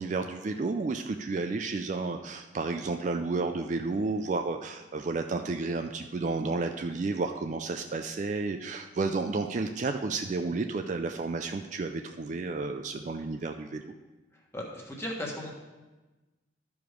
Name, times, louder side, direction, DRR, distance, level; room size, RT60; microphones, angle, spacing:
voice 1, 0.0-13.9, right 3 dB, 40° right, 6 dB, 0.3 m, -31 dB
voice 2, 14.5-15.5, left 1 dB, 15° left, -1 dB, 1.4 m, -36 dB
12.5 x 4.8 x 5.1 m, 1.2 s
head